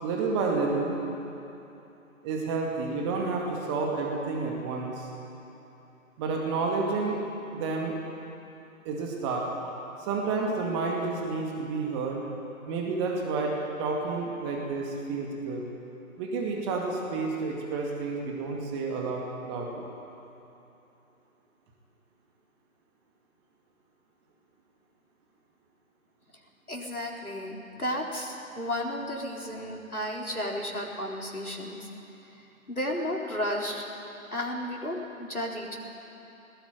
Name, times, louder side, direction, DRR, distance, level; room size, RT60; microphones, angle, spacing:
voice 1, 0.0-1.0 2.2-5.1 6.2-7.2 7.5-7.9 8.8-9.5 10.0-12.2 12.7-15.7 16.2-19.9, right 4 dB, 20° right, 0 dB, 2.3 m, -30 dB
voice 2, 26.7-31.9 32.2-33.8 34.3-35.8, left 1 dB, 90° left, -1 dB, 4.1 m, -33 dB
20.0 x 17.5 x 9.3 m, 3.0 s
figure-of-eight pair, 140°, 43 cm